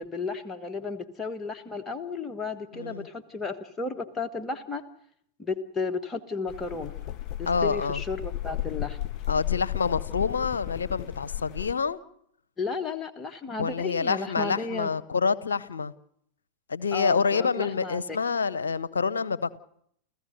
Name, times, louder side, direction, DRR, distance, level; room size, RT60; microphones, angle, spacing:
voice 1, 0.0-4.8 5.4-6.9 7.4-9.0 12.6-14.9 16.9-18.2, left 4 dB, 15° left, 1.4 m, -33 dB
voice 2, 2.7-3.1 7.5-8.0 9.3-12.0 13.6-15.9 16.7-19.6, left 5 dB, 70° left, 0.8 m, -27 dB
sound 1, 6.5-11.7, left 14 dB, 35° left, 1.1 m, -34 dB
29.5 x 15.0 x 6.6 m
figure-of-eight pair, 90°, 0 cm